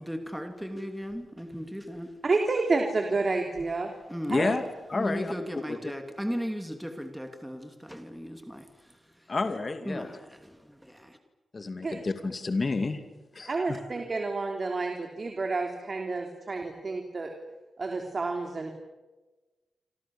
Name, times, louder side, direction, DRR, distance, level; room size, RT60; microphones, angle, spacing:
voice 1, 0.0-2.1 3.6-3.7 4.1-4.6 4.9-9.3 9.8-11.2, equal, ahead, 5 dB, 2.8 m, -37 dB
voice 2, 2.2-3.9 4.3-4.6 11.8-12.0 13.5-17.3 17.8-18.7, right 3 dB, 40° right, 3 dB, 3.5 m, -29 dB
voice 3, 4.3-4.6 4.9-5.3 5.7-5.8 9.3-10.1 11.5-13.0 13.3-13.6, left 3 dB, 40° left, 8 dB, 2.4 m, -29 dB
28.0 x 27.0 x 7.3 m, 1.2 s
cardioid pair, 85°, 0 cm